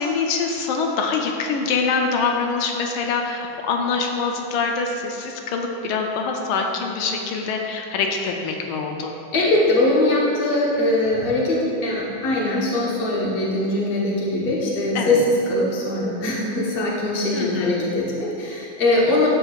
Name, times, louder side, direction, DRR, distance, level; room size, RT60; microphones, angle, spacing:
voice 1, 0.0-9.1 14.9-15.2 17.3-17.8, left 4 dB, 85° left, 2 dB, 1.4 m, -24 dB
voice 2, 9.3-15.2 15.5-19.3, left 2 dB, 35° left, -5 dB, 1.1 m, -21 dB
12.5 x 4.6 x 2.4 m, 2.7 s
omnidirectional pair, 2.3 m